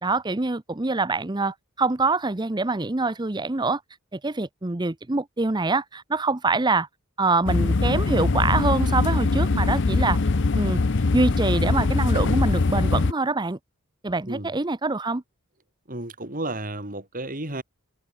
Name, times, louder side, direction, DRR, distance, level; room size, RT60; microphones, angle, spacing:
voice 1, 0.0-3.8 4.2-6.9 7.2-10.2 10.5-10.8 11.1-13.6 14.0-15.2, right 3 dB, 20° right, 0.7 m, -25 dB
sound 1, 7.5-13.1, left 3 dB, 60° left, 0.7 m, -22 dB
voice 2, 15.9-17.6, right 1 dB, 40° right, 5.7 m, -32 dB
head